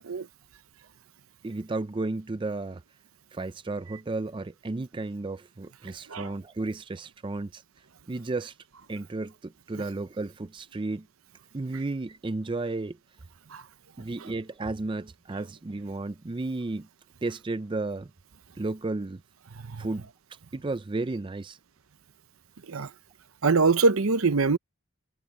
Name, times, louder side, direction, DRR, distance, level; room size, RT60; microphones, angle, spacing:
voice 1, 1.4-2.8 3.3-7.6 8.1-8.5 8.9-11.1 11.5-13.0 14.0-16.9 17.2-18.1 18.6-19.2 19.8-20.1 20.5-21.6, right 2 dB, 20° right, 0.4 m, -33 dB
voice 2, 23.4-24.6, right 4 dB, 70° right, 0.8 m, -23 dB
head